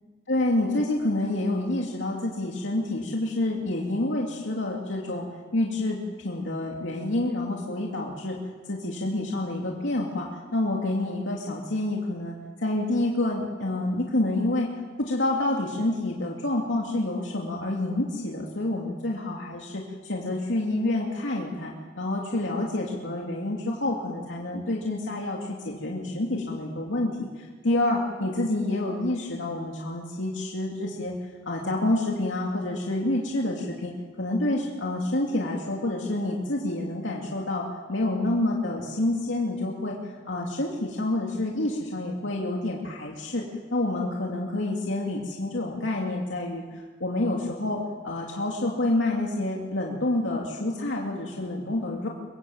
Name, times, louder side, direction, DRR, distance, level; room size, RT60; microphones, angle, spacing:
voice 1, 0.3-5.3 5.5-8.4 8.7-14.7 15.0-31.1 31.4-33.9 34.2-43.4 43.7-52.1, left 2 dB, 90° left, -1 dB, 2.6 m, -28 dB
24.0 x 23.0 x 7.9 m, 1.5 s
head